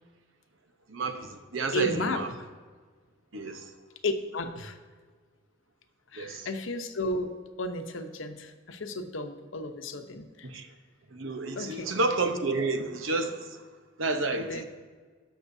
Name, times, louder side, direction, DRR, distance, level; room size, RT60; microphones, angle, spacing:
voice 1, 0.9-2.3 3.3-3.7 6.2-6.5 10.4-10.7 11.1-13.6 14.0-14.6, right 3 dB, 85° right, 6 dB, 1.0 m, -30 dB
voice 2, 1.7-2.5 4.0-4.8 6.1-10.5 11.5-11.9 14.3-14.6, left 1 dB, 80° left, 7 dB, 0.9 m, -33 dB
18.5 x 6.5 x 2.7 m, 1.5 s
head